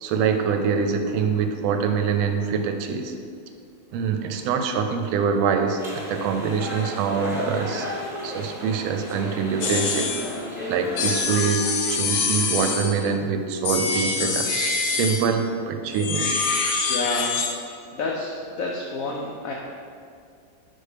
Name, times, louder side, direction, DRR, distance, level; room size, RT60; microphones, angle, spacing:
voice 1, 0.0-3.1 3.9-7.9 8.2-10.1 10.7-11.6 11.9-14.5 14.8-16.3, right 6 dB, 90° right, 6 dB, 1.4 m, -24 dB
sound 1, 5.8-11.2, left 1 dB, ahead, 0.5 m, -33 dB
sound 2, 9.6-10.3 11.0-13.1 13.6-15.4 15.9-17.5, left 4 dB, 65° left, 1.1 m, -25 dB
voice 2, 16.9-17.4 17.6-19.5, left 3 dB, 85° left, -1 dB, 0.7 m, -29 dB
4.6 x 4.3 x 4.9 m, 2.2 s
omnidirectional pair, 2.1 m